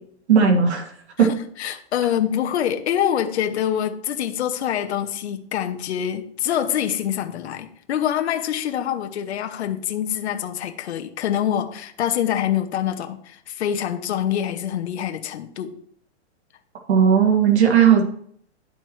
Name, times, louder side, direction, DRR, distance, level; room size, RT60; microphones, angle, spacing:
voice 1, 0.3-0.9 1.2-1.3 16.9-18.0, right 7 dB, 70° right, 2 dB, 1.9 m, -16 dB
voice 2, 1.2-15.8, left 10 dB, 70° left, 6 dB, 0.9 m, -25 dB
12.0 x 4.5 x 3.1 m, 0.63 s
hypercardioid pair, 175°, 34 cm